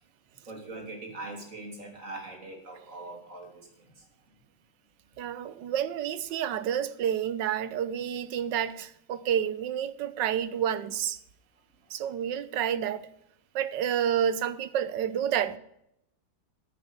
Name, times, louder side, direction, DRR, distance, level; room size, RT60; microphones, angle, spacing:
voice 1, 0.5-3.9, right 2 dB, 40° right, 2 dB, 3.5 m, -42 dB
voice 2, 5.2-11.2 11.9-13.1 13.5-15.6, right 9 dB, 70° right, 15 dB, 1.4 m, -29 dB
10.0 x 9.6 x 7.4 m, 0.77 s
omnidirectional pair, 2.1 m